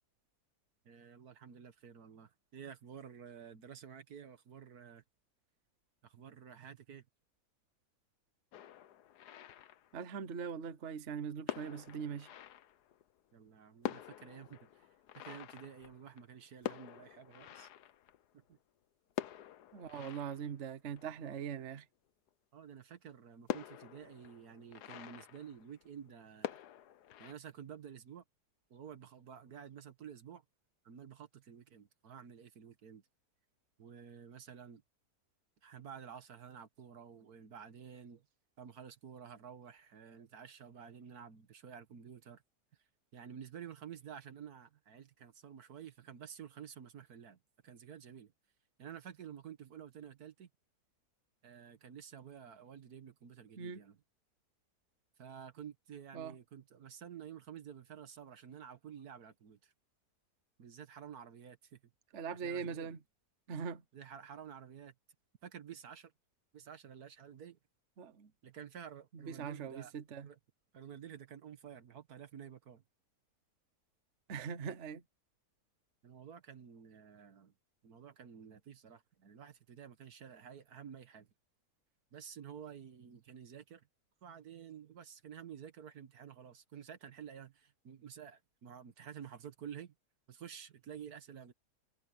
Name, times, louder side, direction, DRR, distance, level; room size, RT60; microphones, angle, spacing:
voice 1, 0.9-5.0 6.0-7.1 13.3-14.9 15.2-17.7 18.3-18.6 22.5-26.6 27.2-28.2 28.7-30.4 30.8-33.0 33.8-34.8 35.6-38.3 38.6-42.4 43.1-47.4 47.6-48.3 48.8-50.5 51.4-54.0 55.2-59.7 60.6-61.8 62.4-63.0 63.9-64.9 65.4-66.1 66.5-67.6 68.4-69.9 70.2-70.4 70.7-72.8 76.0-77.5 77.8-81.3 82.1-83.9 84.2-89.9 90.3-91.5, right 8 dB, 70° right, 1.8 m, -51 dB
sound 1, 8.5-10.3 11.1-11.2 11.5-13.2 13.5-13.6 13.8-18.6 19.1-21.7 22.3-22.4 22.7-22.8 23.5-26.1 26.4-27.3, left 12 dB, 80° left, 1.4 m, -46 dB
voice 2, 9.9-12.3 19.7-21.9 53.6-53.8 56.1-56.4 62.1-63.0 63.5-63.8 68.0-68.3 69.1-70.3 74.3-75.0, right 6 dB, 50° right, 1.3 m, -41 dB
omnidirectional pair, 1.7 m